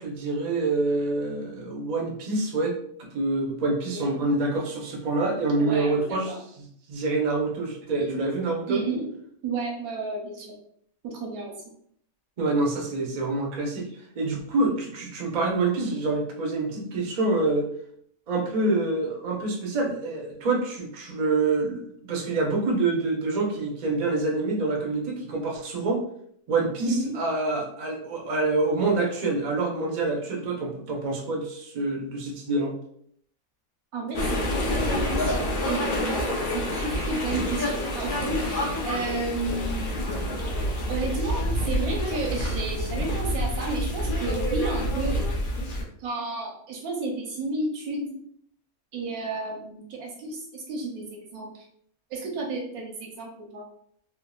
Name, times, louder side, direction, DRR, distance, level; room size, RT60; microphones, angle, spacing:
voice 1, 0.0-2.7 3.1-8.8 12.4-13.9 14.1-17.7 18.3-26.0 26.5-32.8, right 3 dB, 60° right, 0 dB, 0.4 m, -26 dB
voice 2, 3.9-4.3 5.6-6.4 8.1-8.3 8.7-9.1 9.4-10.5 11.0-11.5 26.8-27.1 33.9-39.9 40.9-45.2 46.0-48.1 48.9-51.6 52.1-53.6, right 3 dB, 90° right, -1 dB, 1.2 m, -32 dB
sound 1, 34.1-45.8, equal, 65° left, 0.5 m, -28 dB
3.4 x 2.0 x 2.3 m, 0.66 s
omnidirectional pair, 1.5 m